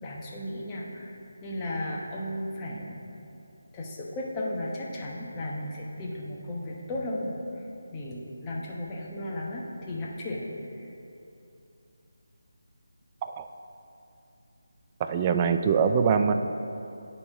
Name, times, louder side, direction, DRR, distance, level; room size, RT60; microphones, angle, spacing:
voice 1, 0.0-1.1 1.4-3.0 3.7-7.3 7.9-10.5 10.8-10.9, left 1 dB, 15° left, -4 dB, 1.0 m, -35 dB
voice 2, 15.0-16.3, right 6 dB, 20° right, 7 dB, 0.3 m, -23 dB
9.7 x 4.3 x 4.5 m, 2.7 s
figure-of-eight pair, 155°, 0 cm